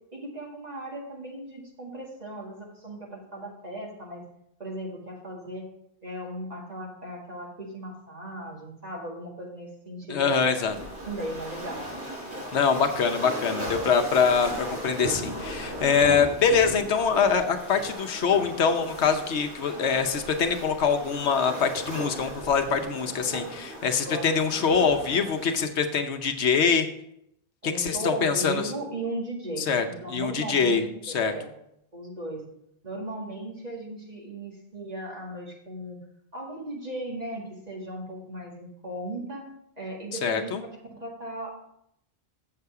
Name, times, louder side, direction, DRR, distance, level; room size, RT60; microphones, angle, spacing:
voice 1, 0.1-4.2 4.6-5.7 6.0-10.6 11.0-11.9 24.0-24.3 27.6-31.5 31.9-32.4 32.8-36.0 36.3-39.5 39.8-40.5 40.9-41.5, right 1 dB, 35° right, -2 dB, 2.0 m, -37 dB
voice 2, 10.1-10.8 12.5-26.9 27.6-28.7 29.6-31.3 40.2-40.6, left 6 dB, 75° left, 6 dB, 1.1 m, -24 dB
Waves surf, 10.7-25.6, equal, 70° right, 3.0 m, -37 dB
7.8 x 6.8 x 4.7 m, 0.77 s
omnidirectional pair, 1.1 m